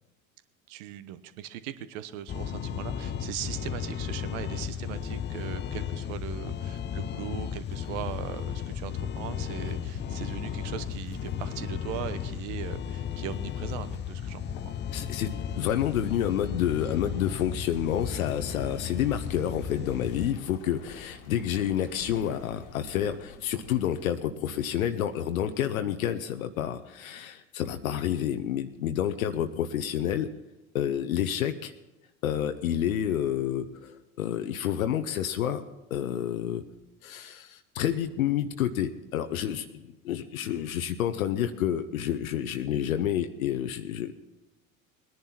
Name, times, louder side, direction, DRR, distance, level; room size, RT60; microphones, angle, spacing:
voice 1, 0.7-14.7, right 12 dB, 60° right, 13 dB, 1.1 m, -39 dB
sound 1, 2.3-20.3, left 8 dB, 25° left, 0.7 m, -35 dB
sound 2, 4.5-24.1, left 5 dB, 55° left, 1.7 m, -50 dB
voice 2, 14.9-30.3 30.7-31.7 32.2-35.6 35.9-36.6 37.0-44.1, left 10 dB, 75° left, 8 dB, 0.9 m, -29 dB
20.0 x 10.5 x 4.4 m, 1.0 s
hypercardioid pair, 75°, 42 cm